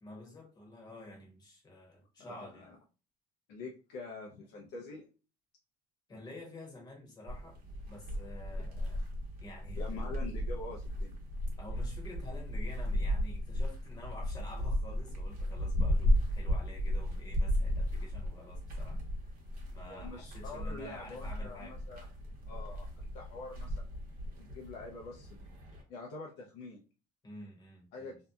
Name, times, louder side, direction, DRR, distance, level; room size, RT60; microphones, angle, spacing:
voice 1, 0.0-2.7 6.1-7.6 7.9-9.0 9.4-9.8 11.6-19.0 19.7-21.7 27.2-28.2, left 1 dB, 25° left, 1.0 m, -49 dB
voice 2, 2.2-2.7 3.5-5.0 9.8-11.1 19.9-22.1 22.5-22.9 23.1-24.0 24.4-25.4 25.9-26.8 27.9-28.1, left 3 dB, 80° left, 0.6 m, -45 dB
sound 1, 7.3-25.8, equal, 55° right, 1.0 m, -35 dB
2.7 x 2.2 x 2.3 m
cardioid pair, 145°, 18 cm